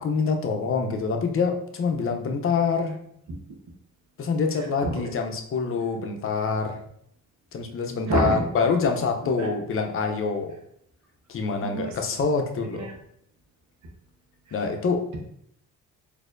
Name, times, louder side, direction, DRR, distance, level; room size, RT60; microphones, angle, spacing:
voice 1, 0.0-3.0 4.2-6.8 7.5-10.5 11.3-12.9 14.5-15.0, left 5 dB, 45° left, 4 dB, 0.6 m, -26 dB
voice 2, 8.1-8.7 9.4-9.5 11.6-12.0 12.6-12.9 14.5-14.6, right 2 dB, 70° right, 1 dB, 1.0 m, -28 dB
4.1 x 2.7 x 2.5 m, 0.71 s
cardioid pair, 90°, 30 cm